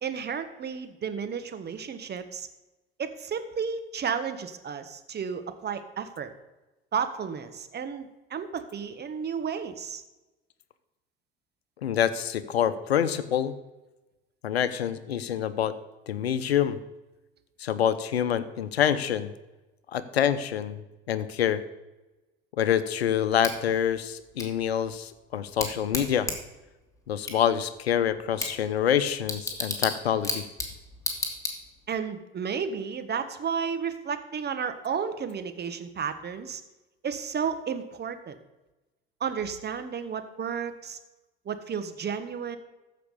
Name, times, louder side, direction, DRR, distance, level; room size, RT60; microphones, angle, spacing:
voice 1, 0.0-2.5 3.0-6.3 6.9-10.0 31.9-36.6 37.0-38.4 39.2-41.0 41.4-42.6, right 6 dB, 35° right, 10 dB, 1.5 m, -32 dB
voice 2, 11.8-13.5 14.4-15.7 16.1-16.8 17.6-19.3 19.9-20.8 21.1-21.6 22.6-26.3 27.1-30.5, left 9 dB, 85° left, 14 dB, 0.8 m, -26 dB
Bicycle / Tick, 23.4-32.0, left 2 dB, 10° left, 2.8 m, -35 dB
14.5 x 6.0 x 6.7 m, 1.1 s
hypercardioid pair, 70°, 31 cm